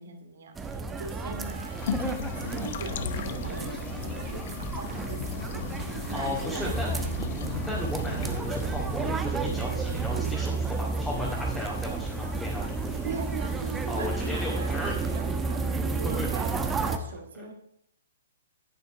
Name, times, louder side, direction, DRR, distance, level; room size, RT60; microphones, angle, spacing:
voice 1, 0.0-4.4 4.7-7.3 7.6-7.7 13.0-16.5 16.8-17.5, right 4 dB, 65° right, 4 dB, 2.5 m, -40 dB
sound 1, 0.6-17.0, right 4 dB, 10° right, 1.0 m, -31 dB
sound 2, 1.2-15.5, left 9 dB, 55° left, 0.8 m, -39 dB
sound 3, 5.2-10.8, right 6 dB, 45° right, 2.0 m, -46 dB
voice 2, 6.1-6.9 7.6-13.1 13.9-14.9 15.7-16.3, left 1 dB, 5° left, -5 dB, 2.1 m, -35 dB
10.0 x 8.1 x 4.8 m, 0.74 s
figure-of-eight pair, 125°, 0 cm